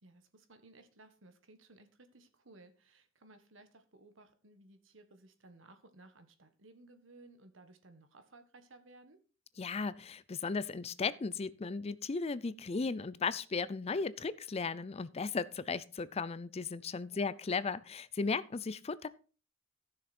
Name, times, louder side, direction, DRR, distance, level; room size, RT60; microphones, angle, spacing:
voice 1, 0.0-9.2 17.1-17.3, right 2 dB, 70° right, 8 dB, 1.6 m, -59 dB
voice 2, 9.6-19.1, left 4 dB, 30° left, 17 dB, 0.4 m, -36 dB
15.0 x 6.5 x 4.3 m, 0.37 s
head